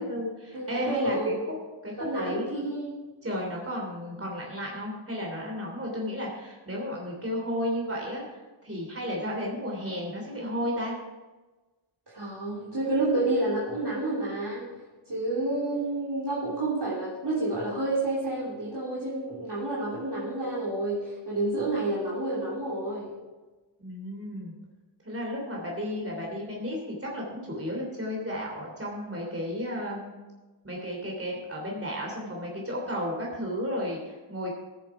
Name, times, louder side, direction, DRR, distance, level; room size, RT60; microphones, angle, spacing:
voice 1, 0.0-1.4 1.8-2.7 3.2-10.9 23.8-24.5 25.0-30.1 30.6-34.6, equal, 30° right, -2 dB, 3.1 m, -33 dB
voice 2, 0.5-1.4 2.0-3.0 12.1-14.7 15.1-23.1, right 2 dB, 55° right, -8 dB, 3.2 m, -29 dB
16.0 x 7.4 x 4.9 m, 1.2 s
wide cardioid pair, 65°, 49 cm